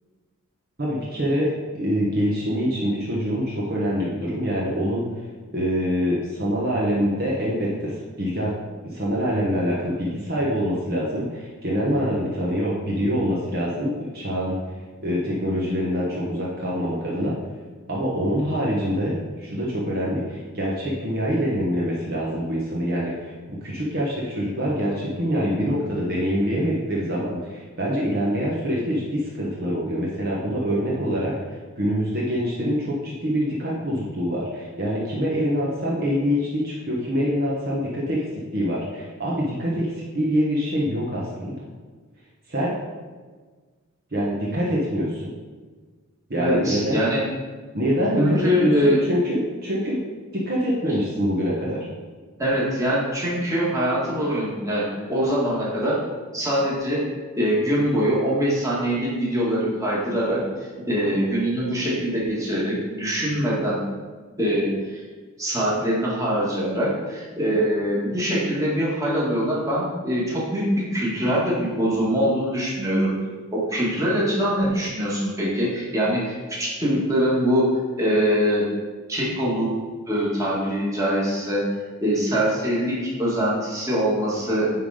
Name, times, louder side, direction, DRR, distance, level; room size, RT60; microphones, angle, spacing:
voice 1, 0.8-5.1 5.5-7.9 8.2-8.5 8.9-14.6 15.0-17.3 17.9-23.3 23.6-31.3 31.8-38.2 38.5-41.7 42.5-42.7 44.1-45.3 46.3-47.0 47.7-50.0 50.3-51.9, equal, 45° right, -5 dB, 1.2 m, -25 dB
voice 2, 46.4-47.2 48.2-49.0 50.8-50.9 52.4-56.0 56.3-57.0 57.4-60.4 60.8-63.8 64.4-65.0 65.4-73.1 73.5-77.6 78.0-78.7 79.1-79.7 80.1-81.6 82.0-84.7, equal, 15° right, -6 dB, 1.9 m, -23 dB
9.4 x 3.9 x 4.9 m, 1.4 s
head